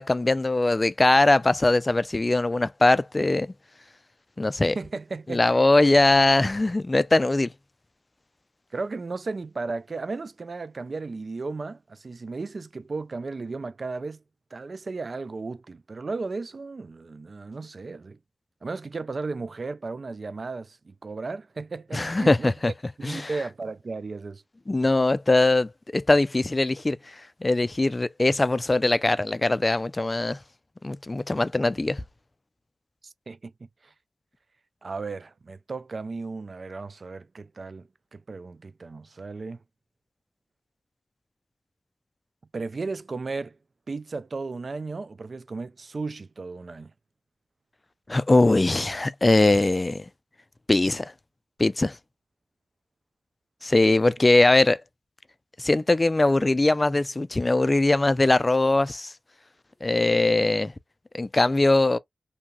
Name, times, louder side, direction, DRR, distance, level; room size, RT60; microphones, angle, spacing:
voice 1, 0.0-3.5 4.4-4.8 5.3-7.5 21.9-22.7 23.0-23.3 24.7-27.0 27.4-30.4 30.8-32.0 48.1-50.0 50.7-51.1 51.6-52.0 53.6-54.8 55.6-59.1 59.8-60.7 61.1-62.0, left 2 dB, 35° left, 0.3 m, -21 dB
voice 2, 4.6-5.4 8.7-14.2 14.5-18.2 18.6-22.5 23.0-24.4 33.0-33.5 33.8-33.9 34.8-39.6 42.5-43.6 43.9-46.9 54.6-54.7, right 3 dB, 60° right, 0.3 m, -35 dB
2.7 x 2.2 x 2.9 m
cardioid pair, 45°, 0 cm